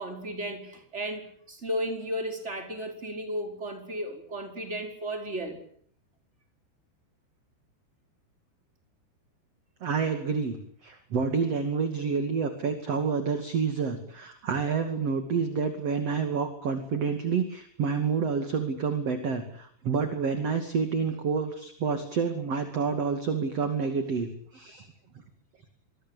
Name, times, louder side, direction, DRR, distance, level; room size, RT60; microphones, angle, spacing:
voice 1, 0.0-5.6, equal, 15° right, 4 dB, 5.1 m, -34 dB
voice 2, 9.8-24.9, right 5 dB, 40° right, 7 dB, 2.9 m, -28 dB
27.0 x 23.0 x 8.3 m, 0.62 s
omnidirectional pair, 5.4 m